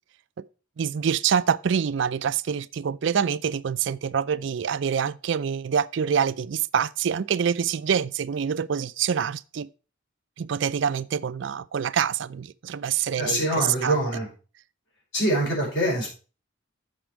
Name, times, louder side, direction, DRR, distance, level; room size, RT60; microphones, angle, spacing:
voice 1, 0.8-9.7 10.4-14.0, right 7 dB, 65° right, 0.4 m, -26 dB
voice 2, 13.2-14.3 15.1-16.1, right 1 dB, 65° left, 5.3 m, -24 dB
7.6 x 6.1 x 4.5 m
head